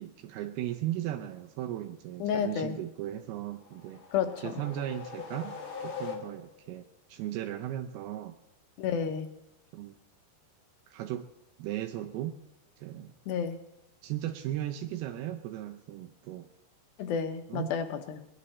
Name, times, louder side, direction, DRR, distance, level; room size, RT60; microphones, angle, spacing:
voice 1, 0.0-4.0 4.4-8.4 9.7-9.9 10.9-11.3 11.6-12.4 12.8-13.1 14.0-16.5 17.5-17.7, right 13 dB, 80° right, 5 dB, 2.5 m, -36 dB
voice 2, 2.2-2.8 4.1-4.5 8.8-9.3 13.3-13.6 17.0-18.2, left 7 dB, 75° left, 8 dB, 2.5 m, -31 dB
sound 1, 3.6-6.7, left 6 dB, 90° left, 1.1 m, -41 dB
21.0 x 11.0 x 4.2 m, 0.86 s
omnidirectional pair, 4.7 m